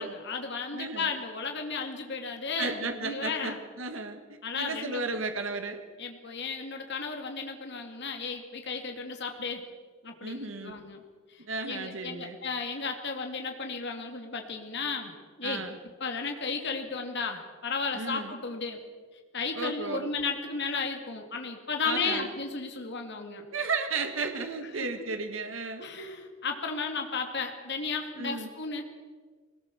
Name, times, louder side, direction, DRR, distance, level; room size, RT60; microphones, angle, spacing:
voice 1, 0.0-3.6 4.4-5.0 6.0-9.7 10.0-11.0 11.3-15.1 15.4-15.6 16.0-18.8 19.3-23.4 24.8-24.9 25.8-28.8, left 4 dB, 60° left, 4 dB, 2.4 m, -34 dB
voice 2, 0.7-1.1 2.6-5.8 10.2-10.8 11.4-12.4 15.4-15.8 17.9-18.3 19.5-20.1 21.8-22.3 23.5-25.9 28.2-28.5, right 3 dB, 70° right, 7 dB, 1.6 m, -34 dB
21.5 x 19.0 x 7.1 m, 1.5 s
head